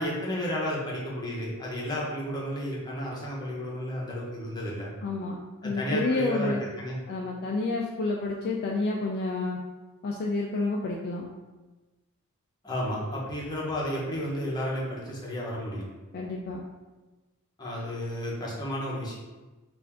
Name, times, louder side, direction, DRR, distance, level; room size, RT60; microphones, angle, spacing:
voice 1, 0.0-4.9 5.6-7.0 12.6-15.9 17.6-19.2, equal, 20° left, -5 dB, 0.8 m, -32 dB
voice 2, 5.0-5.4 5.6-6.6 7.1-9.6 10.0-11.3 16.1-16.6, left 3 dB, 45° left, -1 dB, 0.3 m, -29 dB
3.4 x 2.5 x 3.5 m, 1.2 s
head